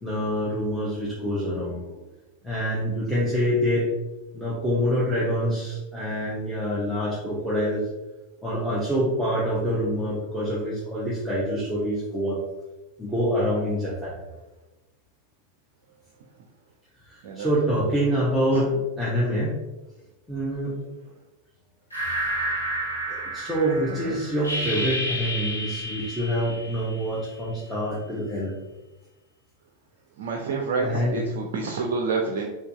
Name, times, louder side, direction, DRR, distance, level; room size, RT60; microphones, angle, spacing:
voice 1, 0.0-2.0 2.4-3.9 4.3-7.8 8.4-12.4 13.0-14.2 17.0-19.6 20.3-20.7 23.1-28.5 30.8-31.2, equal, ahead, -9 dB, 0.7 m, -26 dB
sound 1, 21.9-27.3, equal, 85° left, 1.2 m, -31 dB
voice 2, 30.2-32.5, right 4 dB, 55° right, 1 dB, 0.4 m, -28 dB
3.8 x 2.7 x 2.3 m, 1.1 s
figure-of-eight pair, 90°, 0 cm